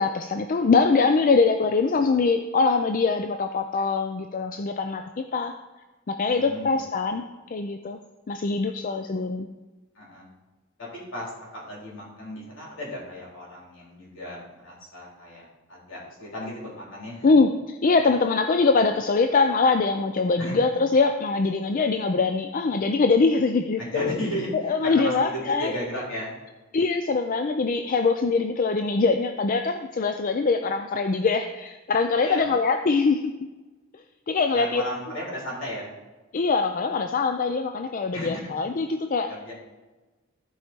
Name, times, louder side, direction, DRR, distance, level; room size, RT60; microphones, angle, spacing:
voice 1, 0.0-5.5 6.1-7.2 7.5-8.0 8.3-9.5 17.2-24.2 24.6-25.7 26.7-33.3 34.3-34.8 36.3-39.3, left 4 dB, 40° left, 7 dB, 0.4 m, -23 dB
voice 2, 6.3-7.1 10.0-10.3 10.8-17.3 20.4-20.6 23.7-26.3 32.1-32.5 34.5-35.9 38.1-38.5 39.3-39.5, equal, 65° left, -5 dB, 3.6 m, -35 dB
14.5 x 4.9 x 4.4 m, 1.2 s
head